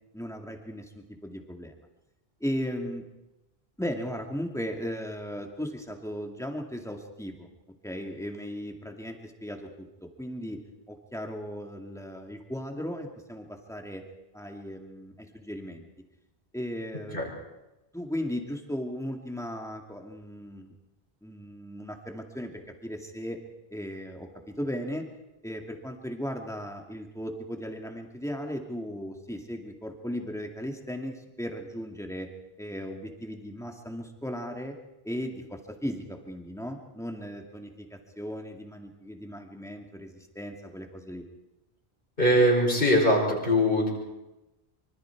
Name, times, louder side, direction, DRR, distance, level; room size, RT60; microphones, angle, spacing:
voice 1, 0.1-1.7 2.4-3.1 3.8-7.5 7.8-10.6 10.9-14.0 14.3-15.8 16.5-17.2 17.9-20.7 21.2-23.4 23.7-25.0 25.4-32.3 32.6-34.7 35.0-41.2, equal, 5° left, 2 dB, 2.3 m, -36 dB
voice 2, 42.2-43.9, equal, 60° left, -1 dB, 5.7 m, -22 dB
25.0 x 24.5 x 4.7 m, 0.99 s
omnidirectional pair, 1.0 m